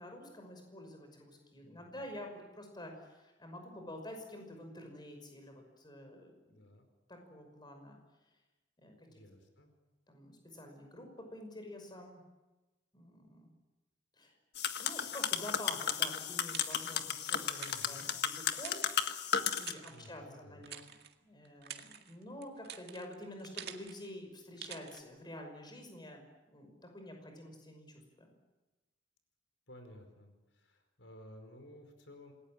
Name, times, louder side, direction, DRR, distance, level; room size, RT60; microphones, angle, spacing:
voice 1, 0.0-6.7 7.1-8.0 8.8-9.1 10.1-12.2 12.9-13.5 14.2-14.3 14.8-21.0 21.2-26.3 26.5-28.3, left 1 dB, 25° left, 4 dB, 5.7 m, -48 dB
voice 2, 6.5-6.9 9.1-9.7 17.6-18.1 19.9-20.7 29.7-32.3, left 1 dB, 80° left, 6 dB, 4.9 m, -55 dB
sound 1, 14.6-19.7, left 8 dB, 60° left, 1.7 m, -34 dB
sound 2, 15.9-17.2 17.5-19.3 19.6-20.2 20.6-21.1 21.4-24.1 24.6-25.0, right 9 dB, 60° right, 2.0 m, -48 dB
27.5 x 20.5 x 8.9 m, 1.1 s
head